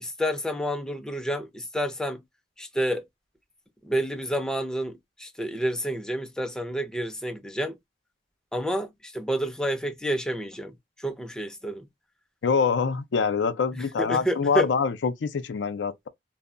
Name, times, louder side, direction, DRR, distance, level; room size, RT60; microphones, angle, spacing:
voice 1, 0.0-2.2 2.6-3.0 3.8-7.8 8.5-11.9 13.8-14.7, equal, 5° left, 0.4 m, -29 dB
voice 2, 12.4-16.1, left 5 dB, 90° left, 0.4 m, -25 dB
2.1 x 2.0 x 3.7 m
head